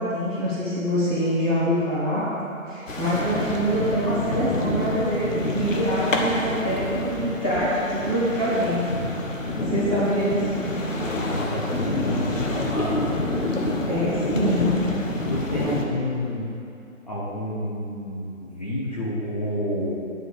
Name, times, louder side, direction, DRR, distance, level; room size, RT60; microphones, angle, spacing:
voice 1, 0.0-2.2 2.7-8.9 9.6-10.4 13.9-14.8, equal, 5° left, -14 dB, 1.5 m, -25 dB
sound 1, 2.9-15.9, left 2 dB, 70° left, 1.5 m, -28 dB
voice 2, 10.9-13.3 13.9-14.0 14.4-14.5 15.3-16.5 17.1-19.9, left 1 dB, 30° left, -7 dB, 1.1 m, -29 dB
10.0 x 5.4 x 8.0 m, 2.6 s
hypercardioid pair, 175°, 41 cm